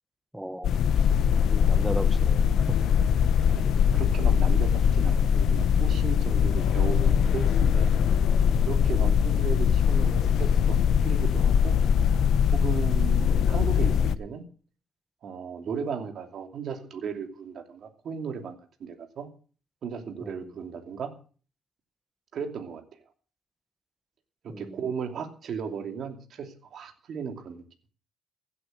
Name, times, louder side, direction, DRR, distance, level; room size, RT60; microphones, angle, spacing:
voice 1, 0.3-0.8 1.5-2.8 8.9-9.2 20.2-20.4 24.5-24.8, right 1 dB, 5° right, 13 dB, 1.2 m, -36 dB
sound 1, 0.6-14.2, left 7 dB, 70° left, 0.8 m, -22 dB
voice 2, 3.5-7.9 8.6-11.8 12.5-14.4 15.2-19.3 19.8-21.1 22.3-23.0 24.6-27.6, right 6 dB, 65° right, 5 dB, 2.7 m, -36 dB
16.0 x 8.5 x 7.7 m, 0.40 s
cardioid pair, 90°, 0 cm